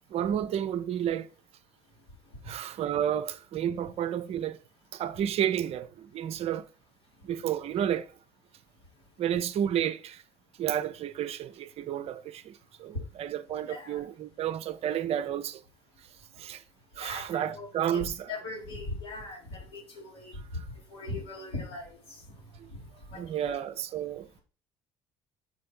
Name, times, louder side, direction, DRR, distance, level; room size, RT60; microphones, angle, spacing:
voice 1, 0.1-1.3 2.5-4.6 4.9-6.6 7.2-8.1 9.2-10.2 10.6-15.6 16.4-16.6 17.0-18.3 23.2-24.4, right 10 dB, 50° right, 0.6 m, -31 dB
voice 2, 13.6-14.0 17.0-20.4 20.9-22.2 22.7-22.8 23.1-23.6, left 2 dB, 85° left, 3.2 m, -40 dB
6.4 x 4.3 x 5.4 m
figure-of-eight pair, 55°, 14 cm